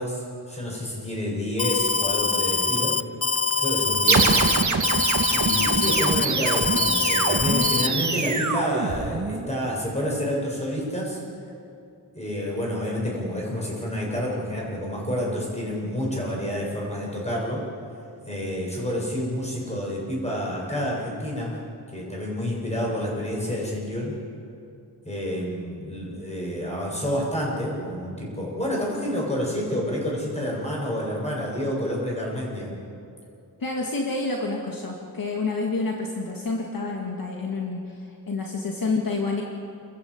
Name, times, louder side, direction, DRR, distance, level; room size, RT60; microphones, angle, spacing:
voice 1, 0.0-2.9 3.6-4.3 5.3-11.2 12.1-17.6 18.3-21.5 21.9-24.1 25.0-32.7, equal, 15° left, -3 dB, 7.8 m, -29 dB
Alarm, 1.6-7.9, left 5 dB, 35° left, 0.6 m, -24 dB
sound 1, 4.1-9.5, right 4 dB, 45° right, 2.0 m, -24 dB
voice 2, 33.6-39.4, left 3 dB, 60° left, 0 dB, 2.2 m, -28 dB
29.5 x 15.0 x 8.2 m, 2.5 s
wide cardioid pair, 115°, 39 cm